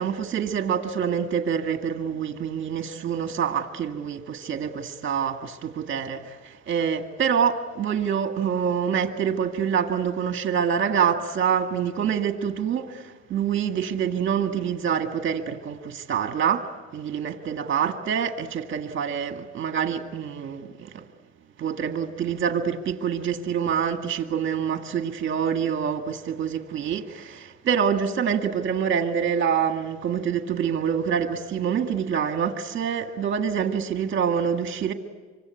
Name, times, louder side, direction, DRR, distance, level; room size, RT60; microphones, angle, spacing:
voice 1, 0.0-21.1 21.6-34.9, right 7 dB, 40° right, 1.9 m, -26 dB
26.0 x 25.0 x 8.4 m
cardioid pair, 145°, 30 cm